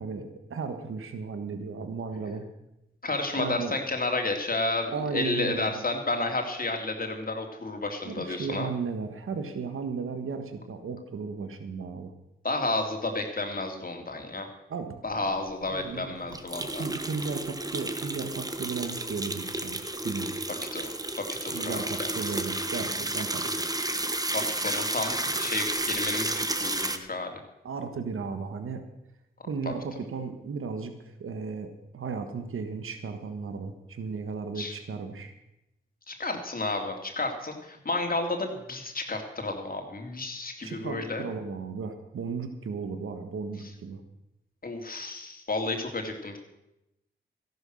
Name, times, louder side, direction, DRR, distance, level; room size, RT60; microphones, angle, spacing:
voice 1, 0.0-2.4 3.4-3.8 4.9-5.8 8.0-12.1 14.7-15.0 15.6-20.5 21.5-23.7 25.3-25.4 27.6-28.8 29.4-35.3 40.6-44.0, right 5 dB, 75° right, 7 dB, 1.5 m, -35 dB
voice 2, 3.0-8.7 12.4-14.5 15.0-16.8 20.7-22.1 24.3-27.4 34.5-34.7 36.1-41.2 44.6-46.4, left 2 dB, 45° left, 3 dB, 3.0 m, -31 dB
sound 1, 15.4-15.5 15.7-15.8 16.3-27.0, right 1 dB, 15° right, 1.4 m, -31 dB
14.0 x 11.5 x 6.5 m, 0.88 s
cardioid pair, 50°, 21 cm